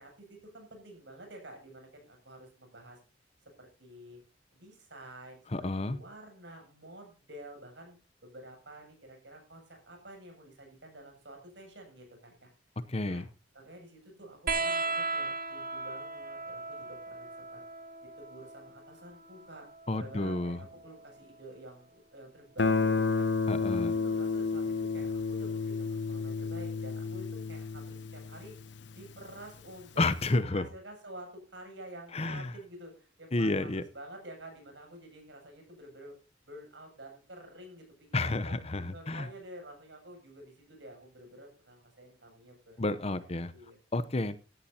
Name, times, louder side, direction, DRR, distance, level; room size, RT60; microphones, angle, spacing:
voice 1, 0.0-3.0 3.4-4.2 4.5-5.4 5.8-12.5 13.0-13.3 13.5-17.6 18.2-19.7 19.9-23.3 23.8-28.5 28.9-30.0 30.3-36.1 36.5-42.8 43.1-43.8, right 1 dB, 65° right, 3 dB, 7.7 m, -50 dB
voice 2, 5.5-6.0 12.9-13.3 19.9-20.6 23.5-23.9 30.0-30.7 32.1-32.5 33.3-33.8 38.1-39.3 42.8-43.5 43.9-44.4, left 2 dB, 30° left, 14 dB, 0.8 m, -30 dB
sound 1, 14.5-21.5 22.9-23.7 25.0-25.1, right 3 dB, 50° right, 1.4 m, -38 dB
Guitar, 22.6-29.3, left 4 dB, 65° left, 0.8 m, -31 dB
17.5 x 13.0 x 2.8 m, 0.35 s
head